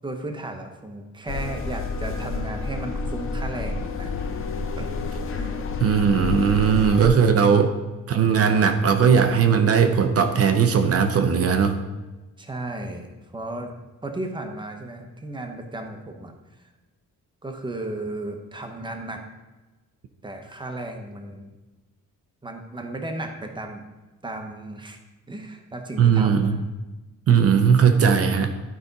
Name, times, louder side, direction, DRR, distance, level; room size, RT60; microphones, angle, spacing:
voice 1, 0.0-4.1 4.8-4.9 5.3-5.5 6.5-6.6 7.0-7.7 12.4-13.7 14.0-16.6 17.4-19.2 20.2-21.5 22.4-23.8 24.2-25.0 25.3-26.6, right 2 dB, 15° right, 4 dB, 0.8 m, -35 dB
sound 1, 1.3-7.1, left 4 dB, 40° left, 0.7 m, -29 dB
voice 2, 5.8-7.7 8.1-11.8 26.0-26.6 27.3-28.5, right 6 dB, 45° right, 7 dB, 0.6 m, -18 dB
11.5 x 5.0 x 4.0 m, 1.1 s
wide cardioid pair, 170°, 33 cm